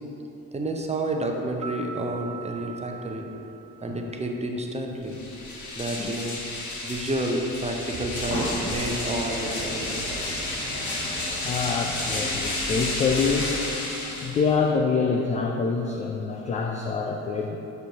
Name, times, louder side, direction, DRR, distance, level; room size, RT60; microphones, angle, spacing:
voice 1, 0.5-3.3 3.8-5.2 5.8-6.4 6.8-10.4, right 1 dB, 15° right, 2 dB, 0.8 m, -30 dB
sound 1, 1.6-4.1, right 4 dB, 55° right, 1.3 m, -41 dB
sound 2, 5.0-14.7, left 2 dB, 40° left, 1.6 m, -32 dB
sound 3, 7.9-13.7, equal, 80° left, 1.5 m, -35 dB
voice 2, 11.3-17.6, left 5 dB, 20° left, 2 dB, 0.3 m, -26 dB
8.8 x 6.8 x 2.9 m, 2.9 s
figure-of-eight pair, 50°, 45 cm